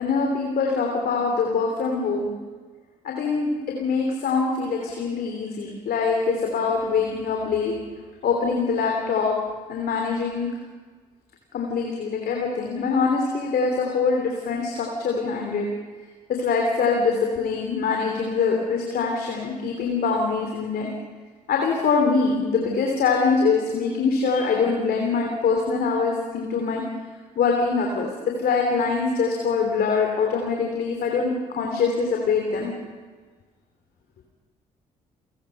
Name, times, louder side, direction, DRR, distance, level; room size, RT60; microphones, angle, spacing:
voice 1, 0.0-2.3 3.0-3.5 3.8-7.7 8.2-9.3 9.7-10.5 11.5-15.7 16.4-20.9 21.5-26.8 27.4-28.1 28.4-32.7, left 4 dB, 50° left, 1 dB, 3.3 m, -23 dB
29.5 x 18.0 x 5.7 m, 1.4 s
figure-of-eight pair, 45°, 20 cm